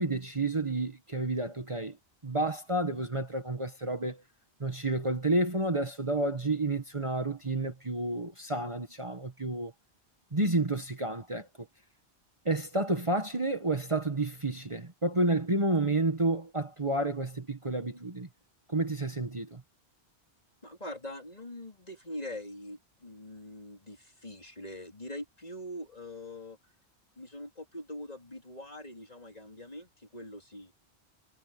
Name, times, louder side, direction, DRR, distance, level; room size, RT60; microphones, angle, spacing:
voice 1, 0.0-2.0 2.2-4.2 4.6-9.7 10.3-11.5 12.4-18.3 18.7-19.6, right 2 dB, 30° right, 1.5 m, -30 dB
voice 2, 20.6-26.6 27.2-30.7, left 1 dB, 35° left, 4.2 m, -43 dB
omnidirectional pair, 1.1 m